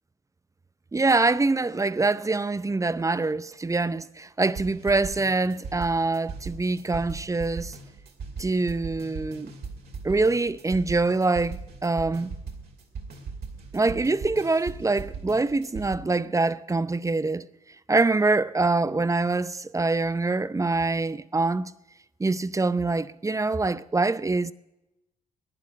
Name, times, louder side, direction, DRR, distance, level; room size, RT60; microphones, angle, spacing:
voice 1, 0.9-7.8 8.4-9.5 10.0-12.3 13.7-17.5 17.9-21.7 22.2-24.5, right 3 dB, 15° right, 0.6 m, -25 dB
sound 1, 4.6-16.0, right 4 dB, 60° right, 2.4 m, -38 dB
11.0 x 10.5 x 9.1 m
hypercardioid pair, 50°, 18 cm